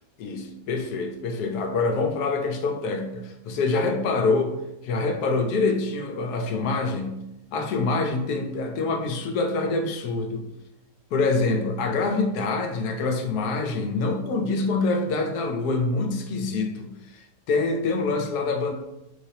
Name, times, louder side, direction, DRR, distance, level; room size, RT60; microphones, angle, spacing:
voice 1, 0.2-4.5 4.8-7.2 7.5-10.5 11.1-18.7, left 3 dB, 90° left, 4 dB, 1.1 m, -25 dB
3.2 x 3.1 x 2.7 m, 0.90 s
omnidirectional pair, 1.6 m